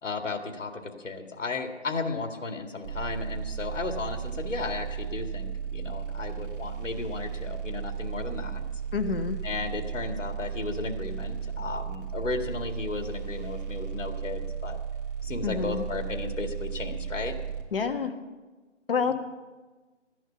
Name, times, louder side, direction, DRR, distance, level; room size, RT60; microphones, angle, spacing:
voice 1, 0.0-8.6 9.4-14.8 15.2-17.4, left 3 dB, 75° left, 4 dB, 2.1 m, -34 dB
sound 1, 2.8-17.6, right 7 dB, 45° right, 3.1 m, -35 dB
voice 2, 8.9-9.4 15.4-15.8 17.7-18.1 18.9-19.1, left 5 dB, 50° left, 7 dB, 1.3 m, -28 dB
15.5 x 11.0 x 6.9 m, 1.3 s
hypercardioid pair, 160°, 37 cm